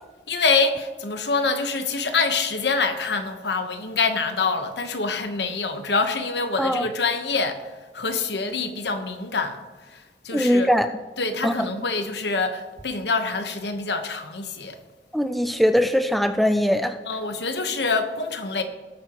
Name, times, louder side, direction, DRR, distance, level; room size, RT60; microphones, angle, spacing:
voice 1, 0.3-7.6 7.9-9.6 9.9-10.7 11.2-14.8 17.1-18.6, left 4 dB, 75° left, 1.1 m, -25 dB
voice 2, 10.3-10.9 11.4-11.7 15.1-17.0, equal, ahead, 0.4 m, -21 dB
19.0 x 8.7 x 3.0 m
head